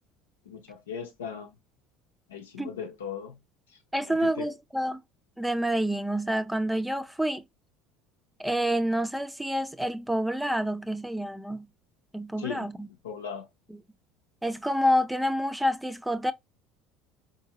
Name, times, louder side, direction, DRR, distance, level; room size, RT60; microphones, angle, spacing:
voice 1, 0.5-1.6 2.3-3.4 3.7-3.8 4.0-4.5 12.4-13.5, left 7 dB, 85° left, 0.7 m, -38 dB
voice 2, 3.9-5.0 5.4-7.4 8.4-11.7 12.1-12.9 14.4-16.3, equal, 5° right, 0.5 m, -28 dB
4.4 x 2.7 x 2.9 m
hypercardioid pair, 70°, 0 cm